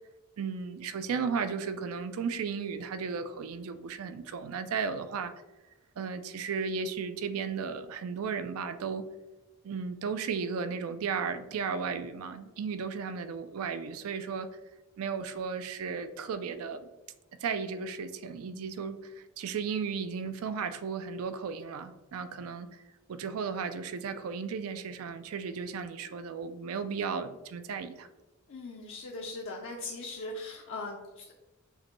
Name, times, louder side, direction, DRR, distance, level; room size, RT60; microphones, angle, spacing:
voice 1, 0.4-5.3 6.0-9.1 9.6-14.5 15.0-16.9 17.4-22.8 23.1-28.1, right 5 dB, 70° right, 11 dB, 0.4 m, -35 dB
voice 2, 28.5-31.3, left 2 dB, 60° left, -1 dB, 0.4 m, -40 dB
6.3 x 2.2 x 3.0 m, 1.1 s
head